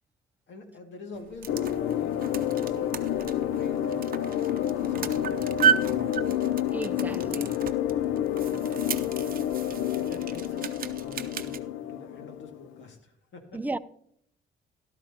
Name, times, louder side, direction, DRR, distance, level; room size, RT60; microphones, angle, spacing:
voice 1, 0.5-6.2 7.9-8.3 9.8-13.6, left 3 dB, 65° left, 2.1 m, -46 dB
sound 1, 1.1-11.6, right 8 dB, 45° right, 0.7 m, -33 dB
sound 2, 1.5-12.7, left 11 dB, 85° left, 0.4 m, -29 dB
voice 2, 6.7-7.5 13.5-13.8, right 2 dB, 10° right, 0.4 m, -34 dB
13.0 x 12.0 x 2.8 m
cardioid pair, 90°, 20 cm